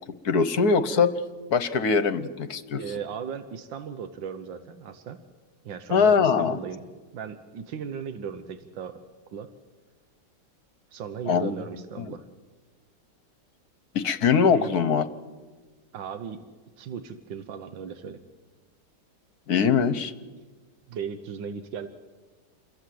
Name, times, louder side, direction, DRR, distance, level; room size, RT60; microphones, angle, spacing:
voice 1, 0.2-1.1 1.5-2.8 5.9-6.6 11.3-11.5 12.0-12.1 13.9-15.0 19.5-20.1, left 6 dB, 60° left, 12 dB, 1.5 m, -22 dB
voice 2, 2.8-5.2 5.7-6.8 7.1-9.0 9.3-9.5 10.9-12.2 14.5-14.7 15.9-16.4 16.8-18.2 20.9-21.9, right 7 dB, 90° right, 9 dB, 1.8 m, -36 dB
29.0 x 22.5 x 7.8 m, 1.3 s
omnidirectional pair, 2.0 m